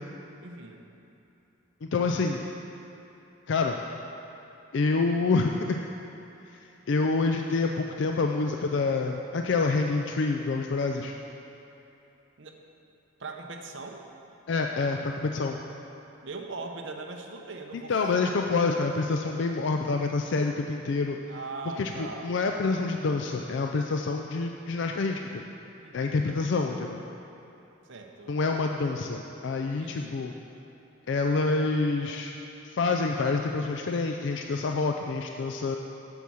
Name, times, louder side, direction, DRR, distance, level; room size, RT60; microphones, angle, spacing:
voice 1, 0.4-0.8 12.4-12.6 13.2-14.0 16.2-17.9 21.3-22.4 25.8-26.2 27.9-28.3 29.8-30.2, right 3 dB, 60° right, 2 dB, 0.9 m, -40 dB
voice 2, 1.8-2.4 3.5-3.8 4.7-5.8 6.9-11.1 14.5-15.6 17.9-21.2 21.8-25.4 25.9-27.0 28.3-30.3 31.1-32.3 32.7-35.8, left 3 dB, 60° left, 3 dB, 0.4 m, -27 dB
8.2 x 7.0 x 6.3 m, 2.9 s
head